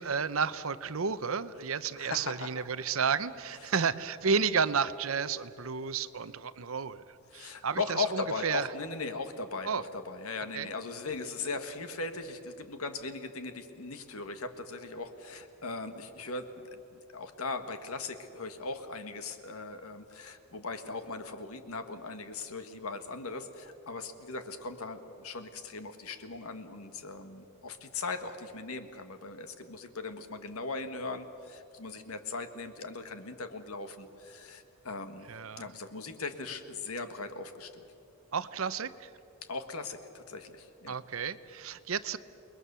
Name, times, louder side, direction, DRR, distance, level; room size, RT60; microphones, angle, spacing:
voice 1, 0.0-8.7 9.6-9.8 10.5-10.7 35.3-35.7 38.3-39.1 40.9-42.2, right 5 dB, 70° right, 14 dB, 0.8 m, -32 dB
voice 2, 1.9-2.5 2.8-2.9 7.3-35.3 35.6-37.9 39.5-41.0, left 3 dB, 85° left, 8 dB, 1.7 m, -39 dB
29.0 x 21.0 x 6.9 m, 2.8 s
head